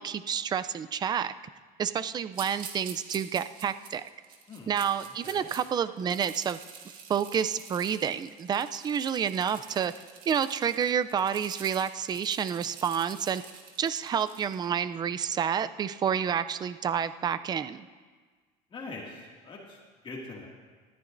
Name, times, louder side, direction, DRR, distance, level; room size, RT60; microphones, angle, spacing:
voice 1, 0.0-1.3 1.8-4.0 4.7-6.6 7.1-9.9 10.3-13.4 13.8-17.9, right 8 dB, 25° right, 13 dB, 0.4 m, -29 dB
sound 1, 2.3-5.6 6.0-14.6, right 7 dB, 65° right, 1.7 m, -46 dB
voice 2, 18.7-19.8 20.0-20.5, left 3 dB, 30° left, -2 dB, 2.2 m, -42 dB
19.0 x 13.5 x 2.6 m, 1.5 s
cardioid pair, 125°, 16 cm